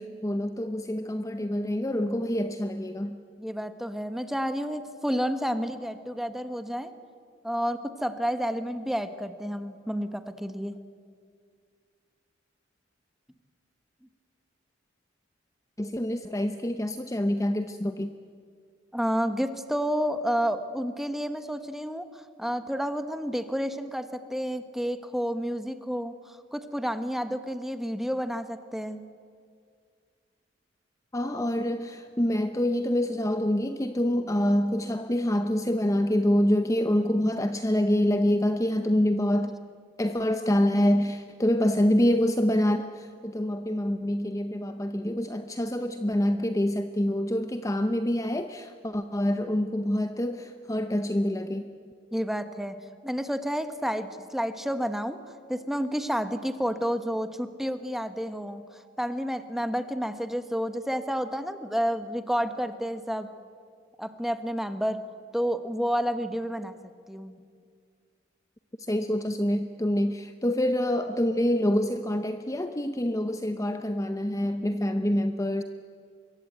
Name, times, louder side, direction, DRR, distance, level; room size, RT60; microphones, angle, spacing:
voice 1, 0.0-3.2 15.8-18.1 31.1-39.6 40.0-51.6 68.9-75.6, left 1 dB, 15° left, 8 dB, 0.8 m, -26 dB
voice 2, 3.4-6.9 7.4-10.8 18.9-29.0 52.1-52.8 53.0-55.2 55.5-58.6 59.0-63.3 64.0-65.0 65.3-66.8 67.1-67.4, equal, ahead, 9 dB, 1.2 m, -30 dB
25.0 x 23.0 x 9.1 m, 2.2 s
head